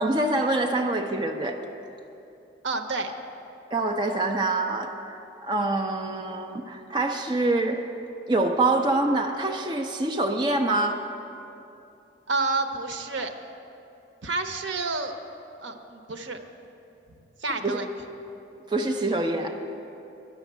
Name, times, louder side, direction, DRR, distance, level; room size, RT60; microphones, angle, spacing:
voice 1, 0.0-1.6 3.7-7.8 8.3-11.0 17.6-17.8 18.7-19.6, right 2 dB, 25° right, 2 dB, 0.6 m, -25 dB
voice 2, 2.6-3.1 12.3-13.3 14.2-15.1 15.6-16.4 17.4-17.9, right 3 dB, 80° right, 6 dB, 0.8 m, -29 dB
11.0 x 7.1 x 9.2 m, 2.8 s
head